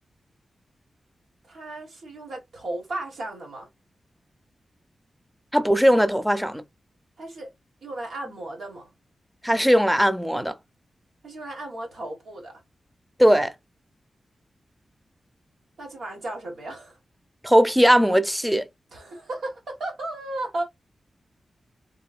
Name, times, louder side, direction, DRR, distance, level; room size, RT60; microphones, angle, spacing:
voice 1, 1.4-3.7 7.2-7.5 7.8-8.9 11.2-12.6 15.8-17.0 18.9-20.6, right 2 dB, 90° right, 1.6 m, -35 dB
voice 2, 5.5-6.6 9.4-10.5 13.2-13.5 17.4-18.7, equal, 5° right, 0.5 m, -19 dB
3.6 x 2.7 x 2.4 m
wide cardioid pair, 125°, 0 cm